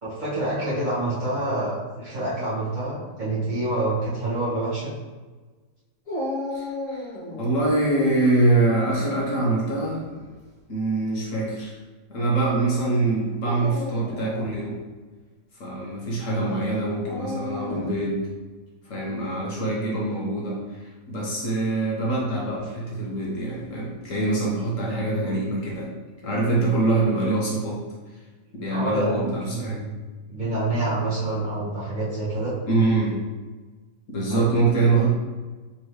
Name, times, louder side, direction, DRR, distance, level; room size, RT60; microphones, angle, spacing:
voice 1, 0.0-4.9 25.2-25.4 28.7-29.9 30.3-32.5 34.3-34.5, right 2 dB, 30° right, -10 dB, 1.6 m, -27 dB
Dog, 6.1-7.7 9.8-10.3 11.1-11.2 13.3-14.6 17.0-18.0, left 1 dB, 35° left, 0.6 m, -33 dB
voice 2, 6.5-10.0 10.7-11.7 12.1-14.8 15.6-18.2 18.8-25.9 26.2-27.8 28.5-29.8 32.7-33.2 34.1-35.1, right 2 dB, 55° left, -4 dB, 1.2 m, -24 dB
4.2 x 3.5 x 3.0 m, 1.3 s
omnidirectional pair, 1.8 m